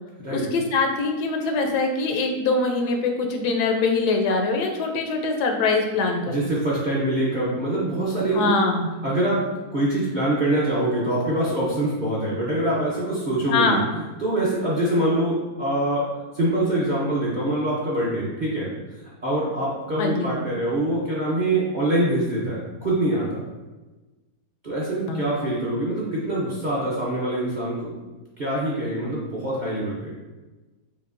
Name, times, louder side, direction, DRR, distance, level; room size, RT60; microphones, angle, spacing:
voice 1, 0.3-6.4 8.3-8.9 13.5-13.9 20.0-20.3 25.1-25.3, left 3 dB, 90° left, 3 dB, 1.2 m, -23 dB
voice 2, 6.3-8.6 9.0-9.4 9.7-13.8 14.2-16.1 16.3-18.7 19.2-23.4 24.6-28.0 28.4-30.1, right 1 dB, 45° right, -6 dB, 0.6 m, -24 dB
5.4 x 2.6 x 2.5 m, 1.2 s
omnidirectional pair, 1.7 m